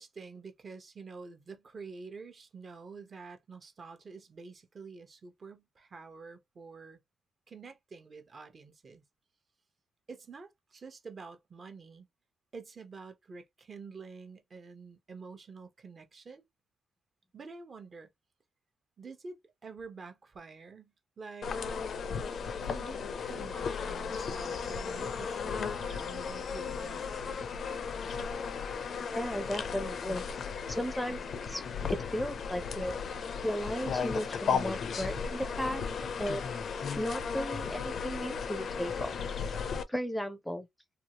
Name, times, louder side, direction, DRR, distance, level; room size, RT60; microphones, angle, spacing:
voice 1, 0.0-7.0 7.5-9.0 10.1-12.1 12.5-16.4 17.3-18.1 19.0-21.6 22.6-27.3, right 4 dB, 45° right, 0.8 m, -48 dB
sound 1, 21.4-39.8, left 6 dB, 60° left, 0.4 m, -35 dB
voice 2, 29.1-30.2 30.7-31.2 31.5-31.6 31.9-33.0 33.4-35.8 36.2-36.5 37.0-39.1 39.9-40.7, equal, 5° left, 0.5 m, -35 dB
2.7 x 2.4 x 2.9 m
cardioid pair, 80°, 0 cm